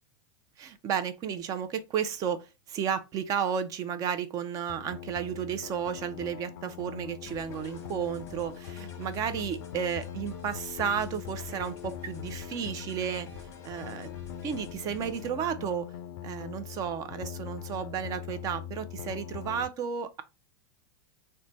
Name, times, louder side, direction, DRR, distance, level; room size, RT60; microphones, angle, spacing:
voice 1, 0.6-13.3 13.6-14.1 14.4-15.9 16.2-20.2, right 8 dB, 30° right, 0.5 m, -33 dB
sound 1, 4.7-19.7, left 10 dB, 70° left, 0.4 m, -42 dB
sound 2, 7.2-15.3, left 3 dB, 25° left, 0.9 m, -51 dB
3.2 x 2.2 x 3.8 m
supercardioid pair, 130°, 12 cm